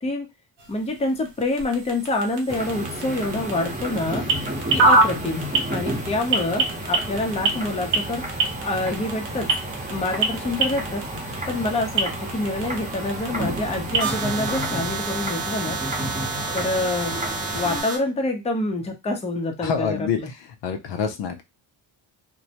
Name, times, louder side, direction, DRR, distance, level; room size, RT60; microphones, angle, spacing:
sound 1, 0.6-18.0, right 3 dB, 60° right, 0.8 m, -27 dB
voice 1, 0.7-4.2 4.7-8.2 8.6-9.5 9.9-11.0 11.5-15.8 16.5-17.2 17.5-20.3, left 2 dB, 15° left, 2 dB, 0.6 m, -26 dB
sound 2, 2.5-17.8, right 1 dB, 15° right, 0.8 m, -31 dB
voice 2, 19.6-20.2 20.6-21.4, left 7 dB, 65° left, 6 dB, 0.6 m, -26 dB
2.2 x 2.1 x 2.8 m, 0.22 s
cardioid pair, 90°, 48 cm